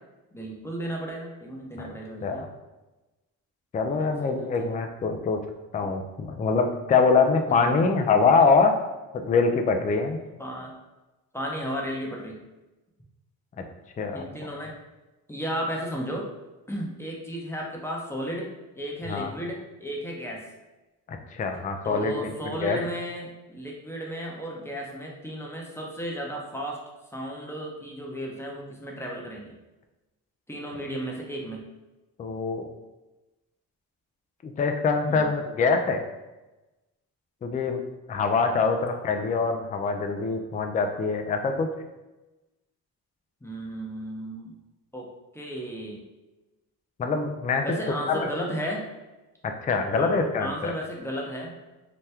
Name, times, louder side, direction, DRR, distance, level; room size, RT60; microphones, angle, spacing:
voice 1, 0.3-2.5 3.8-4.7 5.8-5.9 7.5-7.8 10.4-10.7 11.3-12.4 14.1-14.7 15.3-16.3 16.7-18.5 18.7-20.4 21.8-26.8 27.1-29.5 30.5-31.7 35.1-35.3 38.5-38.9 43.4-44.5 44.9-45.1 45.3-46.0 47.6-48.9 49.9-51.6, equal, 5° left, -2 dB, 0.7 m, -34 dB
voice 2, 3.7-5.4 5.7-8.7 9.1-10.2 14.0-14.3 19.1-19.3 21.1-22.8 32.2-32.7 34.4-36.0 37.4-37.8 38.1-41.7 47.0-47.7 48.1-48.3 49.4-50.7, left 4 dB, 20° left, 5 dB, 0.3 m, -24 dB
2.9 x 2.1 x 3.3 m, 1.1 s
supercardioid pair, 65°, 39 cm